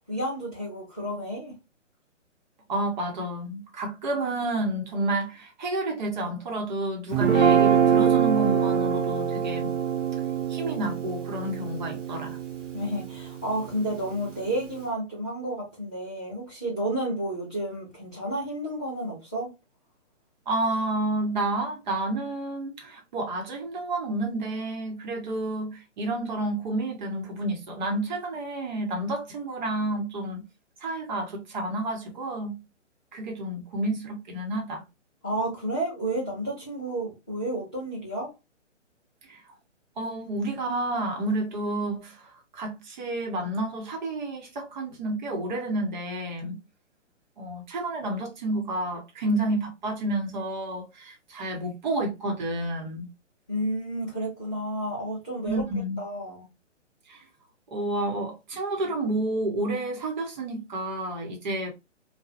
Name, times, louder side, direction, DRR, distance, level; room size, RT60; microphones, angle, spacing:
voice 1, 0.1-1.5 12.7-19.5 35.2-38.3 53.5-55.6 56.0-56.4, right 1 dB, 5° left, 0.4 m, -31 dB
voice 2, 2.7-9.7 10.5-12.4 20.5-30.4 30.8-32.6 33.1-34.8 39.2-39.4 40.0-46.6 47.4-53.1 55.5-56.0 57.1-57.2 57.7-61.7, right 1 dB, 40° right, 0.9 m, -30 dB
Guitar, 7.1-13.4, right 7 dB, 80° right, 0.9 m, -24 dB
2.7 x 2.3 x 2.4 m
figure-of-eight pair, 135°, 37 cm